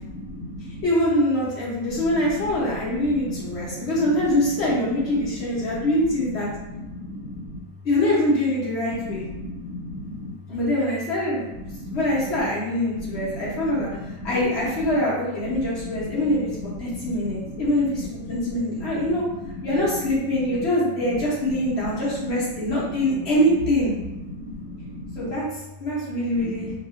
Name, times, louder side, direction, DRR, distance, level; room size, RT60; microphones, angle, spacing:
voice 1, 0.0-0.8 1.9-2.3 2.7-4.2 5.7-5.9 6.7-7.6 9.0-10.3 11.6-12.0 12.9-14.3 15.6-16.4 16.6-17.6 18.3-19.0 22.7-22.8 24.2-25.3 26.4-26.7, left 1 dB, 70° right, -6 dB, 0.9 m, -36 dB
voice 2, 0.8-6.5 7.8-9.2 10.5-11.5 11.9-16.5 16.8-19.2 19.6-23.9 25.2-26.7, left 1 dB, 50° left, -7 dB, 0.8 m, -24 dB
2.7 x 2.4 x 2.4 m, 0.99 s
omnidirectional pair, 1.9 m